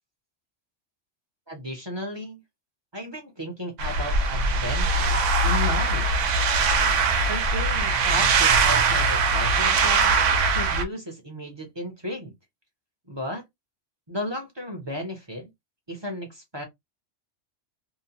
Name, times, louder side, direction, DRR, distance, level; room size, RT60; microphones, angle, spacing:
voice 1, 1.5-2.4 2.9-6.3 7.3-10.2 10.5-12.3 13.1-13.4 14.1-15.5 15.9-16.6, equal, 25° right, 0.7 m, -34 dB
sound 1, 3.8-10.8, right 4 dB, 80° right, 1.0 m, -21 dB
2.8 x 2.1 x 2.8 m
omnidirectional pair, 1.2 m